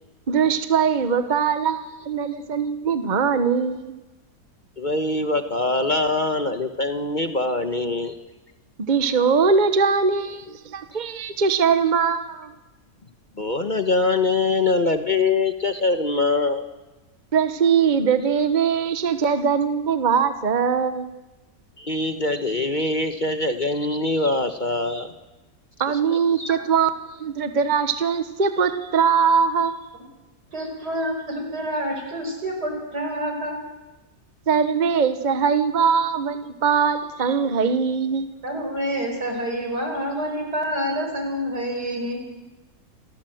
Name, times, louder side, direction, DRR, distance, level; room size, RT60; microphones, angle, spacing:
voice 1, 0.3-3.9 8.8-12.5 17.3-21.1 25.8-29.7 34.5-38.3, right 6 dB, 30° right, 9 dB, 1.1 m, -21 dB
voice 2, 4.8-8.1 13.4-16.6 21.8-25.1 26.4-26.5, left 3 dB, 35° left, 7 dB, 1.2 m, -23 dB
voice 3, 30.5-33.6 38.4-42.2, equal, 85° right, 3 dB, 5.8 m, -27 dB
28.0 x 16.5 x 7.8 m, 1.1 s
omnidirectional pair, 1.7 m